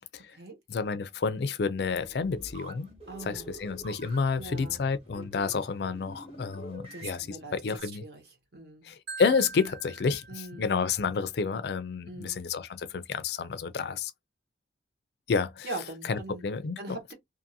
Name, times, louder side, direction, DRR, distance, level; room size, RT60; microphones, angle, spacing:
voice 1, 0.0-0.4 0.7-2.9 3.2-8.0 8.8-14.1 15.3-15.7 16.1-17.0, left 5 dB, 65° left, 0.4 m, -30 dB
sound 1, 1.8-7.8, right 1 dB, 35° right, 1.1 m, -47 dB
voice 2, 3.1-3.5 4.4-4.8 6.9-7.6 7.8-8.2 8.5-8.9 10.3-10.8 12.1-12.4 15.6-16.4 16.8-17.1, right 2 dB, 60° right, 1.1 m, -41 dB
Marimba xylophone, 9.1-11.1, right 4 dB, 80° right, 0.5 m, -44 dB
2.6 x 2.5 x 2.7 m
head